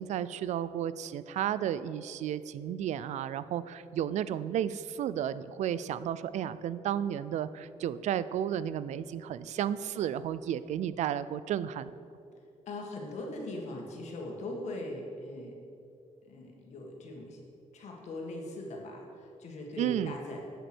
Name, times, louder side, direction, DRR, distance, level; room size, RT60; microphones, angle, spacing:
voice 1, 0.0-11.9 19.8-20.1, right 10 dB, 70° right, 15 dB, 0.4 m, -33 dB
voice 2, 12.7-15.5 16.3-17.4 17.7-20.4, left 1 dB, 65° left, 0 dB, 1.9 m, -40 dB
8.2 x 7.7 x 6.1 m, 2.6 s
cardioid pair, 135°, 12 cm